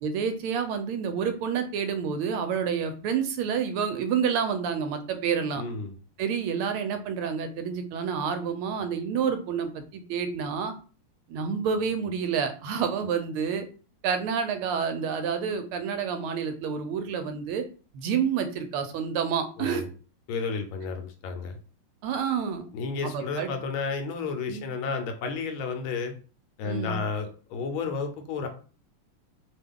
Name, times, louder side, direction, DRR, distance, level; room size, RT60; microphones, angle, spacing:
voice 1, 0.0-5.6 6.2-10.7 11.3-13.6 14.0-17.6 17.9-19.8 22.0-22.6 23.0-23.5 24.5-24.6 26.6-27.0, right 7 dB, 80° right, 8 dB, 1.4 m, -29 dB
voice 2, 5.6-5.9 19.6-19.9 20.3-21.6 22.7-26.1 26.6-28.5, left 4 dB, 75° left, 6 dB, 1.3 m, -32 dB
3.4 x 2.2 x 3.5 m, 0.38 s
omnidirectional pair, 2.4 m